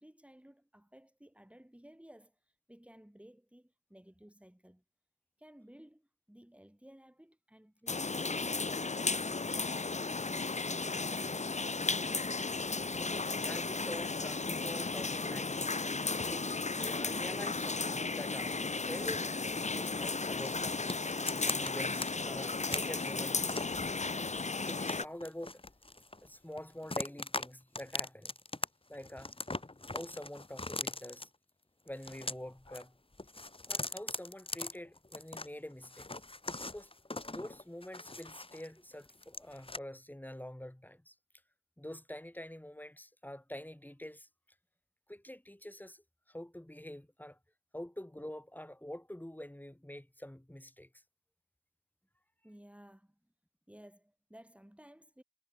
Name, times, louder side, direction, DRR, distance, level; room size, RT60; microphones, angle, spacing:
voice 1, 0.0-4.8 5.4-9.4 9.8-11.0 52.4-53.2 53.7-55.2, equal, 10° right, 5.5 m, -57 dB
sound 1, 7.9-25.0, left 3 dB, 60° left, 1.5 m, -35 dB
voice 2, 12.7-15.9 16.3-16.5 16.8-19.4 19.7-21.0 21.3-23.5 24.6-25.6 26.2-28.3 28.9-29.3 29.9-31.3 31.9-32.9 33.7-36.2 36.6-36.9 37.3-41.1 41.8-44.3 45.1-46.0 46.3-47.4 47.7-50.9, left 1 dB, 15° left, 7.6 m, -46 dB
sound 2, 20.4-22.1 22.4-23.8 24.3-26.3 26.6-27.5 27.7-28.7 28.9-31.2 31.9-32.8 33.1-35.5 35.8-38.7 39.0-39.8, left 2 dB, 45° left, 4.4 m, -40 dB
wide cardioid pair, 50°, 13 cm